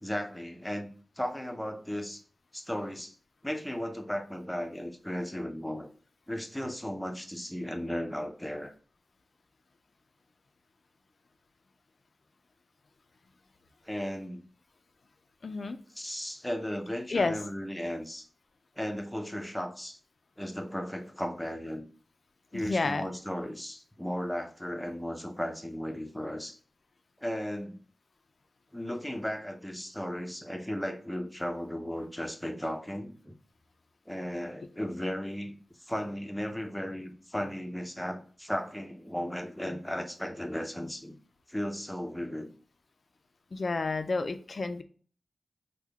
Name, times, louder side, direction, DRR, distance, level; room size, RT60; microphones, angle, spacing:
voice 1, 0.0-2.2 2.5-3.1 3.4-5.9 6.3-8.7 13.8-14.5 16.0-18.3 18.8-20.0 20.4-21.9 22.5-26.6 27.2-27.8 28.7-33.3 34.1-41.2 41.5-42.5, equal, 5° left, 0.5 m, -35 dB
voice 2, 15.4-15.8 17.1-17.4 22.5-23.1 43.5-44.8, left 3 dB, 60° left, 0.3 m, -30 dB
3.5 x 2.1 x 3.3 m
wide cardioid pair, 85°, 0 cm